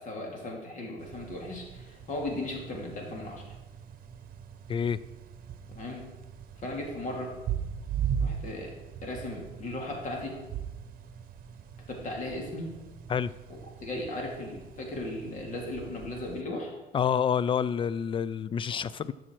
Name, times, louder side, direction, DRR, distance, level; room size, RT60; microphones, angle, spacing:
voice 1, 0.0-3.4 5.7-6.1 6.6-7.4 8.2-8.7 9.0-10.4 11.9-12.7 13.5-16.7 18.7-18.9, left 1 dB, 50° left, 0 dB, 2.8 m, -37 dB
sound 1, 1.0-16.4, right 8 dB, 60° right, 0.9 m, -39 dB
voice 2, 16.9-19.1, left 7 dB, 30° left, 18 dB, 0.4 m, -28 dB
13.0 x 6.3 x 4.6 m, 1.1 s
cardioid pair, 110°, 17 cm